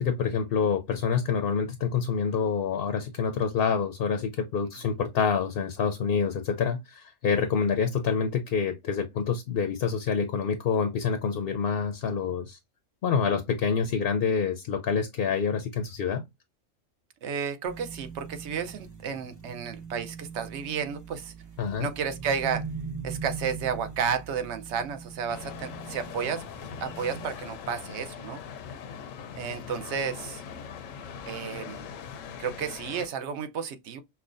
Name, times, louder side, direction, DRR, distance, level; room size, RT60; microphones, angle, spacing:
voice 1, 0.0-12.6 13.0-16.2 21.6-21.9, left 6 dB, 60° left, 0.7 m, -27 dB
voice 2, 17.2-21.3 21.8-22.6 23.0-26.5 26.8-28.4 29.3-30.4 31.3-31.9 32.4-34.0, right 7 dB, 65° right, 0.9 m, -32 dB
sound 1, 17.7-27.3, right 5 dB, 15° right, 0.8 m, -41 dB
sound 2, 25.3-33.1, left 7 dB, 80° left, 1.0 m, -41 dB
5.5 x 2.1 x 2.5 m
omnidirectional pair, 1.3 m